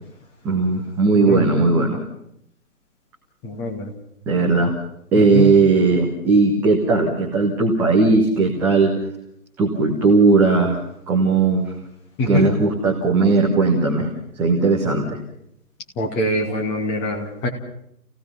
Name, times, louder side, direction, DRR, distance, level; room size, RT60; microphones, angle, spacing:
voice 1, 0.4-2.0 4.3-4.7 5.1-8.9 9.6-10.8 11.1-11.7 12.3-14.1 14.3-15.2, right 3 dB, 5° right, -4 dB, 1.0 m, -17 dB
voice 2, 3.4-3.9 5.3-5.5 12.2-12.5 16.0-17.5, left 1 dB, 15° left, 1 dB, 2.3 m, -23 dB
28.5 x 17.5 x 5.8 m, 0.74 s
figure-of-eight pair, 145°, 46 cm